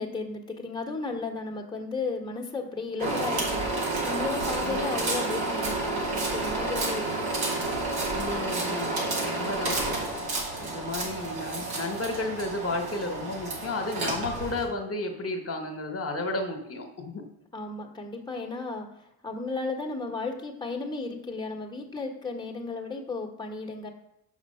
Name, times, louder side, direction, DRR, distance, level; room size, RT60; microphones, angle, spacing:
voice 1, 0.0-3.7 4.0-7.3 10.6-11.2 17.5-18.9 19.2-23.9, left 3 dB, 10° left, 1 dB, 1.4 m, -34 dB
sound 1, 3.0-14.6, right 2 dB, 70° right, 2.6 m, -30 dB
voice 2, 4.6-5.0 8.1-9.9 10.6-17.2, left 2 dB, 35° left, 4 dB, 1.5 m, -33 dB
5.9 x 5.6 x 5.6 m, 0.82 s
supercardioid pair, 55°, 40 cm